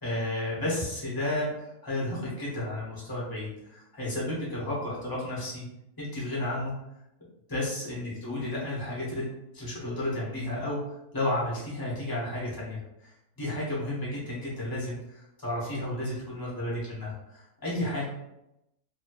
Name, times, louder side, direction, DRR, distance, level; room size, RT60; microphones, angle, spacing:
voice 1, 0.0-5.6 6.0-6.7 7.5-9.3 9.5-10.8 11.1-13.1 13.4-18.0, left 1 dB, 15° left, -6 dB, 0.8 m, -32 dB
2.8 x 2.7 x 2.9 m, 0.86 s
omnidirectional pair, 1.7 m